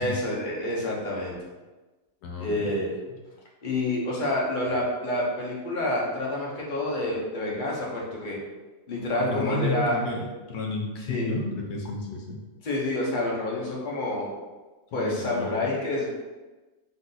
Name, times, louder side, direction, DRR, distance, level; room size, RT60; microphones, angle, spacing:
voice 1, 0.0-1.4 2.4-2.9 3.6-8.4 8.9-9.9 11.1-11.4 12.6-14.3 14.9-16.1, left 1 dB, 40° left, -4 dB, 0.7 m, -28 dB
voice 2, 2.2-2.8 9.2-12.4 14.9-15.7, left 2 dB, 70° left, 0 dB, 1.1 m, -32 dB
3.9 x 2.6 x 3.9 m, 1.2 s
omnidirectional pair, 1.9 m